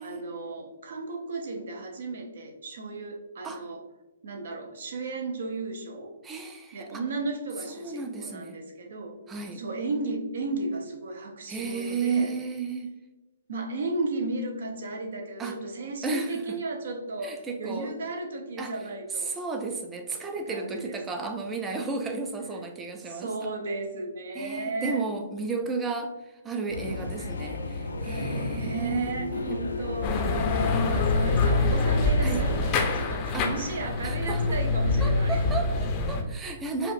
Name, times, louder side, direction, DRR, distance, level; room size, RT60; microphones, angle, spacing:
voice 1, 0.0-3.8 4.2-6.1 6.7-9.2 9.5-12.3 13.5-19.4 20.5-21.0 23.1-25.0 28.2-35.4 36.4-36.6, right 2 dB, 60° right, 3 dB, 0.8 m, -34 dB
voice 2, 6.2-7.0 7.7-8.6 9.3-9.6 11.5-12.9 15.4-15.6 16.0-16.6 17.2-17.9 18.6-18.8 19.1-23.5 24.3-29.6 32.2-32.4 33.3-33.5 34.0-34.6 35.0-36.9, right 4 dB, 15° right, 5 dB, 0.5 m, -33 dB
sound 1, 26.7-33.1, left 2 dB, 75° left, 0.5 m, -33 dB
sound 2, 30.0-36.2, left 3 dB, 30° left, 0.6 m, -25 dB
4.9 x 2.4 x 2.6 m, 1.1 s
figure-of-eight pair, 125°, 0 cm